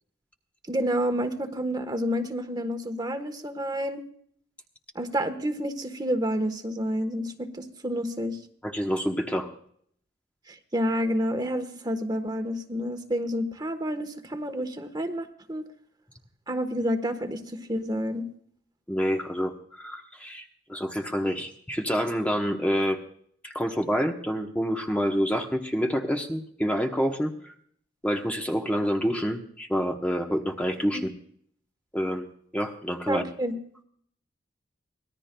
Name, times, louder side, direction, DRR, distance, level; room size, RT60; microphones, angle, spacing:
voice 1, 0.7-4.0 4.9-8.4 10.7-15.6 16.5-18.2 30.9-31.1 33.1-33.5, equal, 20° right, 8 dB, 1.2 m, -29 dB
voice 2, 8.6-9.5 18.9-23.0 23.4-27.5 28.0-31.1 31.9-32.3 32.5-33.2, equal, 5° left, 2 dB, 1.0 m, -27 dB
24.5 x 18.5 x 2.3 m, 0.63 s
head